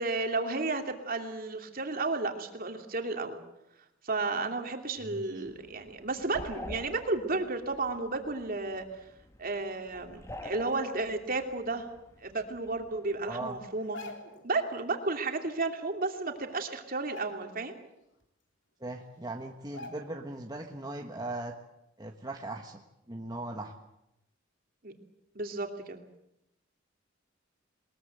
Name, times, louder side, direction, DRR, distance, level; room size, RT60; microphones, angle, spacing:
voice 1, 0.0-3.4 4.0-8.8 9.4-11.9 12.2-14.0 14.4-17.7 24.8-24.9 25.3-26.0, right 3 dB, 45° right, 4 dB, 2.8 m, -33 dB
voice 2, 5.0-5.4 13.3-13.5 18.8-21.6 22.0-22.8 23.1-23.7, right 2 dB, 20° right, 2 dB, 1.4 m, -39 dB
sound 1, 5.4-13.7, left 1 dB, 15° left, 1.7 m, -48 dB
sound 2, 13.8-14.5 15.9-16.0 16.4-16.6 17.0-17.8 18.2-18.3 19.1-19.2 19.7-20.4 20.7-20.9, left 2 dB, 65° left, 3.5 m, -46 dB
22.0 x 21.0 x 8.0 m, 0.86 s
head